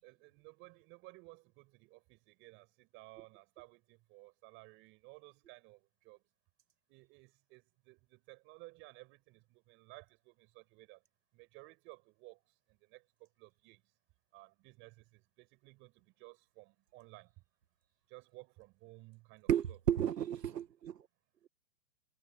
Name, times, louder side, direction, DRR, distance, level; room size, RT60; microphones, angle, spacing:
voice 1, 0.0-6.2 6.9-11.0 11.3-12.4 12.7-13.8 14.3-17.3 18.1-19.8, right 23 dB, 25° right, 5.2 m, -57 dB
voice 2, 19.5-21.0, right 9 dB, 85° right, 1.7 m, -32 dB
hypercardioid pair, 160°, 48 cm